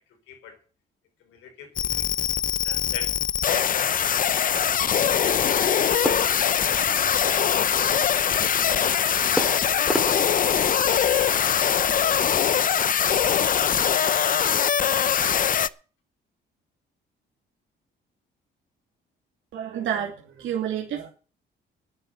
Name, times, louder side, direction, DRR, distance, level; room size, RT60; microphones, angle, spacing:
voice 1, 0.1-0.6 1.2-2.1 2.6-3.2 3.4-5.1 7.7-8.6 11.9-12.3 12.7-13.5, left 7 dB, 90° left, 5 dB, 4.5 m, -43 dB
sound 1, 1.5-2.3 3.8-4.2 4.8-5.9 6.2-7.5 8.3-8.8 9.1-10.1 10.9-11.2 11.4-11.5 12.0-13.4, right 5 dB, 55° right, 4.2 m, -51 dB
sound 2, 1.8-15.7, left 8 dB, 45° left, 0.7 m, -22 dB
sound 3, 6.0-7.6 9.4-11.4, equal, 5° left, 3.1 m, -33 dB
voice 2, 19.5-21.1, right 9 dB, 75° right, 0 dB, 2.7 m, -29 dB
10.0 x 9.8 x 7.7 m, 0.38 s
cardioid pair, 90°, 20 cm